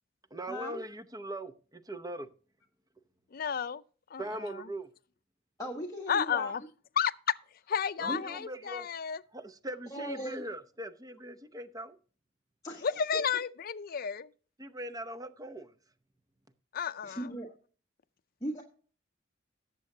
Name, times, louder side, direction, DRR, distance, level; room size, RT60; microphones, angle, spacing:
voice 1, 0.3-2.3 4.2-4.9 8.0-8.9 9.3-12.0 14.6-15.7, right 1 dB, 20° right, 0.7 m, -40 dB
voice 2, 3.3-3.8 4.1-4.6 6.1-6.6 7.0-7.1 7.7-9.2 12.8-14.3 16.7-17.3, left 7 dB, 50° left, 0.5 m, -32 dB
voice 3, 5.6-6.5 8.0-8.2 9.9-10.4 12.6-12.9 13.1-13.2 17.0-17.5 18.4-18.6, equal, 20° left, 1.3 m, -38 dB
18.0 x 7.3 x 2.8 m
head